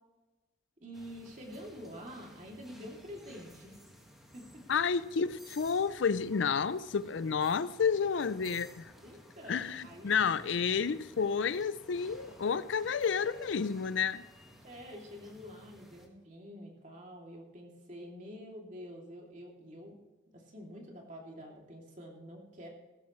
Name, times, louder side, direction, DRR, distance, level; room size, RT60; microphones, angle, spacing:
voice 1, 0.8-3.9 4.3-4.6 9.0-10.3 14.6-20.0 20.3-22.7, equal, 40° right, 2.7 m, -47 dB
sound 1, 0.9-16.1, equal, ahead, 1.7 m, -56 dB
voice 2, 4.7-8.9 9.5-14.2, left 6 dB, 70° left, 0.5 m, -30 dB
16.0 x 13.0 x 3.2 m
head